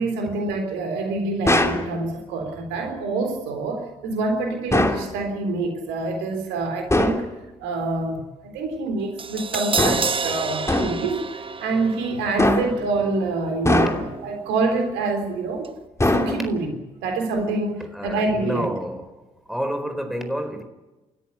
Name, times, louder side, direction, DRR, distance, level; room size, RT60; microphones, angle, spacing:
voice 1, 0.0-7.3 7.6-8.2 8.5-11.3 11.6-15.7 16.0-16.8 17.0-18.7, right 3 dB, 75° right, 3.8 m, -26 dB
sound 1, 1.5-1.9 4.7-5.1 6.9-7.3 9.8-10.2 10.7-11.1 12.4-12.9 13.7-14.2 16.0-16.7, left 1 dB, 15° left, 3.3 m, -21 dB
Crash cymbal, 9.2-15.3 15.6-15.7, right 4 dB, 30° right, 1.1 m, -31 dB
voice 2, 17.8-19.2 19.5-20.6, equal, ahead, 4.4 m, -29 dB
30.0 x 13.5 x 8.2 m
hypercardioid pair, 45°, 19 cm